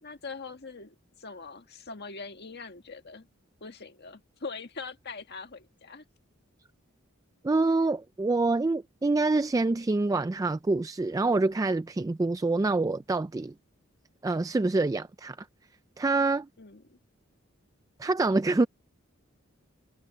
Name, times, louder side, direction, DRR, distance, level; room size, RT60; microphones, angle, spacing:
voice 1, 0.0-3.3 3.6-6.0 16.6-17.0, left 4 dB, 55° left, 1.7 m, -42 dB
voice 2, 7.4-13.5 14.2-15.4 16.0-16.5 18.0-18.7, right 3 dB, 15° right, 0.3 m, -26 dB
head